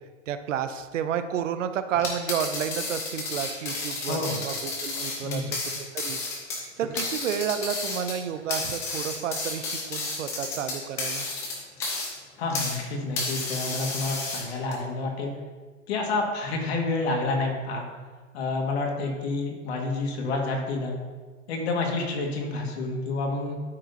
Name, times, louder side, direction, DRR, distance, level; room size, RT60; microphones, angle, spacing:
voice 1, 0.3-6.2 6.8-11.3, right 8 dB, 70° right, 10 dB, 0.8 m, -31 dB
sound 1, 1.9-12.8 13.2-14.7, left 3 dB, 5° left, 0.4 m, -32 dB
voice 2, 4.1-4.4 5.2-5.5 12.4-15.3 15.9-17.9 18.3-21.0 21.5-23.6, left 3 dB, 50° left, 1 dB, 1.9 m, -29 dB
12.5 x 4.8 x 2.7 m, 1.5 s
hypercardioid pair, 145°, 40 cm